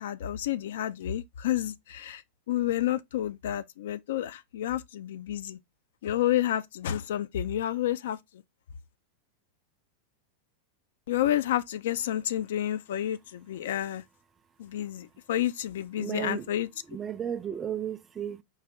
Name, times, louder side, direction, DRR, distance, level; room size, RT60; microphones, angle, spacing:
voice 1, 0.0-5.6 6.0-8.2 11.1-14.0 14.6-16.7, left 12 dB, 60° left, 0.3 m, -30 dB
voice 2, 16.0-16.5 16.9-18.4, right 9 dB, 20° right, 0.4 m, -34 dB
4.7 x 2.7 x 3.3 m
figure-of-eight pair, 90°, 0 cm